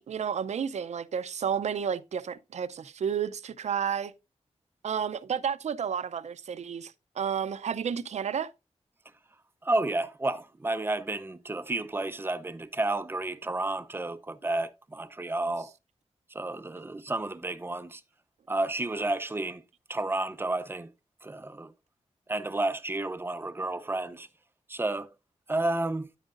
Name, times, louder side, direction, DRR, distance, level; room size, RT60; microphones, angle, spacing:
voice 1, 0.0-4.1 4.8-8.5, right 7 dB, 75° right, 0.6 m, -31 dB
voice 2, 9.6-15.7 16.3-18.0 18.5-19.6 19.9-20.9 21.2-21.7 22.3-24.3 24.7-25.1 25.5-26.1, right 2 dB, 20° right, 0.6 m, -31 dB
9.9 x 9.0 x 2.5 m
wide cardioid pair, 150°, 12 cm